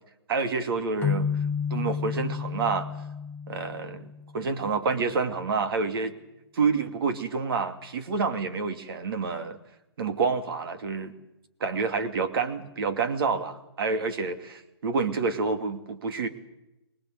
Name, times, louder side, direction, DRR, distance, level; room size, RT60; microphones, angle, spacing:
voice 1, 0.3-1.3 1.7-2.9 3.5-6.1 6.5-9.6 10.0-11.1 11.6-16.3, right 4 dB, 55° right, 8 dB, 2.5 m, -28 dB
sound 1, 1.0-4.5, left 6 dB, 15° left, 1.1 m, -31 dB
24.5 x 19.5 x 7.9 m, 0.94 s
hypercardioid pair, 135°, 14 cm